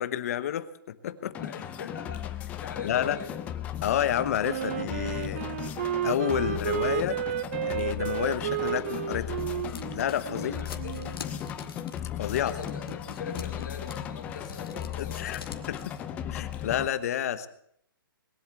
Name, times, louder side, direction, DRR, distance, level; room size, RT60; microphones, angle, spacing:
voice 1, 0.0-1.3 2.8-3.2 3.8-5.4 6.0-7.2 7.7-9.4 9.9-10.5 12.2-12.5 15.0-16.0 16.3-17.5, left 10 dB, 40° left, 12 dB, 1.1 m, -30 dB
sound 1, 1.3-16.9, left 10 dB, 10° left, 0.6 m, -37 dB
voice 2, 1.4-3.4 10.3-11.2 12.4-15.7, left 5 dB, 55° left, 2 dB, 3.8 m, -42 dB
Wind instrument woodwind instrument, 4.4-11.2, right 12 dB, 35° right, 0.6 m, -32 dB
sound 2, 8.8-16.1, left 6 dB, 90° left, 2.1 m, -44 dB
21.5 x 8.1 x 8.3 m, 0.70 s
hypercardioid pair, 165°, 12 cm